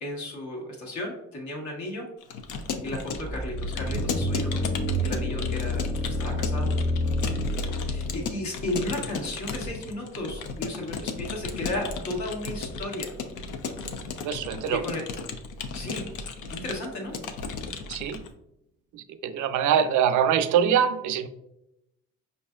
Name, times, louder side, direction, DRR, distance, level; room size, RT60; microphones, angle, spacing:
voice 1, 0.0-2.1 2.8-4.6 5.0-5.9 6.2-6.7 7.2-13.1 14.7-15.0 15.7-16.1 16.4-17.2, left 1 dB, 70° left, 0 dB, 1.3 m, -34 dB
Keyboard (musical) / Computer keyboard, 2.2-18.3, left 5 dB, 85° left, 0.5 m, -35 dB
sound 1, 3.1-8.2, left 1 dB, 15° left, 0.6 m, -28 dB
voice 2, 14.2-14.8 17.9-18.2 18.9-21.3, right 8 dB, 80° right, 10 dB, 0.4 m, -24 dB
5.3 x 2.5 x 2.3 m, 0.84 s
cardioid pair, 90°, 30 cm